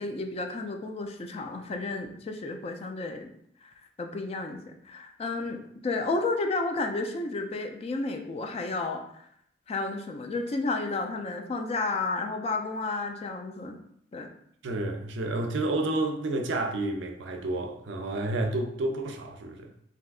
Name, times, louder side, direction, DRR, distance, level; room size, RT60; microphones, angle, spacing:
voice 1, 0.0-3.3 3.6-3.7 4.0-9.2 9.7-13.8 14.1-14.3, left 3 dB, 35° left, 0.3 m, -32 dB
voice 2, 14.6-19.7, right 2 dB, 75° right, 0.4 m, -30 dB
3.3 x 2.7 x 2.3 m
head